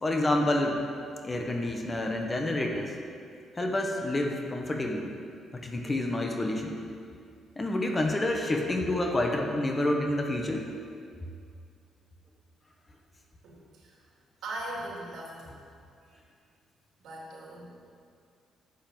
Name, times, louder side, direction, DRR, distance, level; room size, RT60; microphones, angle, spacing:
voice 1, 0.0-0.8 1.2-2.9 3.6-5.1 5.5-6.7 7.6-10.7, left 1 dB, 25° left, 2 dB, 1.5 m, -28 dB
voice 2, 13.4-13.9 14.4-15.6 16.1-16.2 17.0-17.9, right 1 dB, 70° right, -3 dB, 3.8 m, -40 dB
10.5 x 8.7 x 7.1 m, 2.3 s
cardioid pair, 90°, 0 cm